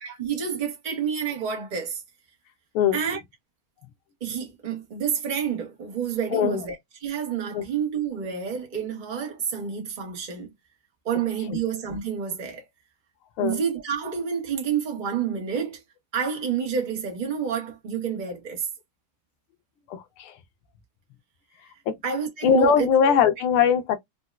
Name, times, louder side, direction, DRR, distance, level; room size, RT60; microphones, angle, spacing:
voice 1, 0.0-2.0 2.9-3.2 4.2-6.8 7.0-10.5 11.0-12.6 13.4-15.8 16.1-18.7 22.0-22.9, right 7 dB, 35° right, 0.8 m, -29 dB
voice 2, 19.9-20.4 21.9-22.0 22.4-24.0, left 7 dB, 90° left, 1.5 m, -21 dB
4.3 x 2.1 x 2.2 m
omnidirectional pair, 2.3 m